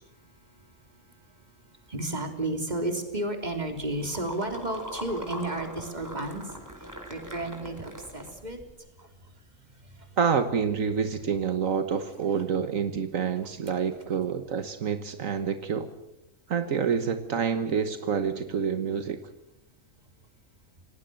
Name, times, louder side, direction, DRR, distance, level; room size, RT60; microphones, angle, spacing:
voice 1, 1.6-6.5 6.8-8.6 9.0-9.1 9.8-10.1, right 1 dB, 30° right, 5 dB, 3.6 m, -33 dB
sound 1, 3.4-8.7, equal, 15° right, 4.0 m, -42 dB
voice 2, 10.2-15.9 16.5-19.2, right 6 dB, 80° right, 9 dB, 1.7 m, -27 dB
28.0 x 18.5 x 7.7 m, 0.85 s
omnidirectional pair, 1.4 m